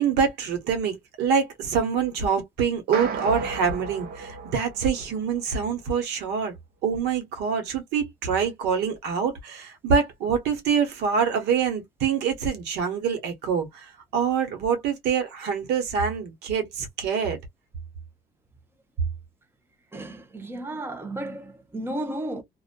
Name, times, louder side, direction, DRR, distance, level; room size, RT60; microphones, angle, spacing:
voice 1, 0.0-6.5 6.8-17.4, right 6 dB, 80° right, 1.1 m, -25 dB
sound 1, 2.9-5.4, right 4 dB, 65° right, 0.8 m, -33 dB
voice 2, 19.9-22.4, right 1 dB, 15° right, 0.8 m, -33 dB
2.6 x 2.4 x 2.3 m
cardioid pair, 110°, 17 cm